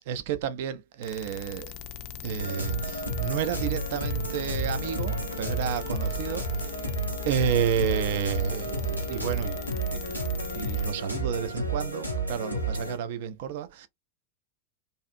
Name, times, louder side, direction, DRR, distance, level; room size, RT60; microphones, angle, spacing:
voice 1, 0.0-1.7 2.2-6.8 7.3-10.2 10.5-13.9, right 8 dB, 50° right, 0.4 m, -31 dB
sound 1, 1.0-10.9, left 12 dB, 45° left, 0.4 m, -38 dB
sound 2, 2.4-13.0, right 2 dB, 85° right, 0.7 m, -31 dB
2.6 x 2.3 x 2.6 m
figure-of-eight pair, 90°, 0 cm